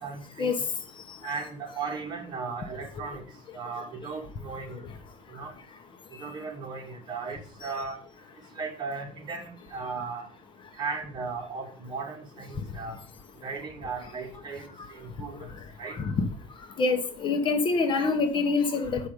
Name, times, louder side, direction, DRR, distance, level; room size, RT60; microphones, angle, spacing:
voice 1, 0.0-0.6 1.2-3.2 3.5-4.8 5.3-5.5 6.2-8.0 8.6-10.3 10.8-13.0 13.4-15.5 15.8-16.0, right 4 dB, 35° right, 0 dB, 2.5 m, -36 dB
voice 2, 16.8-19.1, left 4 dB, 40° left, 7 dB, 1.0 m, -25 dB
8.1 x 5.8 x 5.0 m, 0.42 s
cardioid pair, 150°, 13 cm